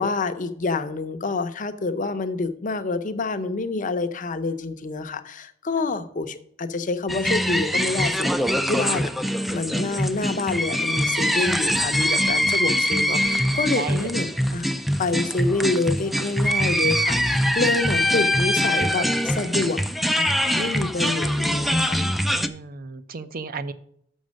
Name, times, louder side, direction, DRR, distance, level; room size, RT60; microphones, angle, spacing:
voice 1, 0.0-8.3 8.7-9.1 9.5-14.7 15.0-19.8 20.2-22.0, left 3 dB, 45° left, 10 dB, 0.6 m, -27 dB
sound 1, 7.1-22.5, equal, ahead, 0.3 m, -23 dB
voice 2, 13.8-14.1 22.3-23.7, right 5 dB, 50° right, 13 dB, 0.6 m, -34 dB
6.5 x 6.3 x 6.3 m, 0.68 s
head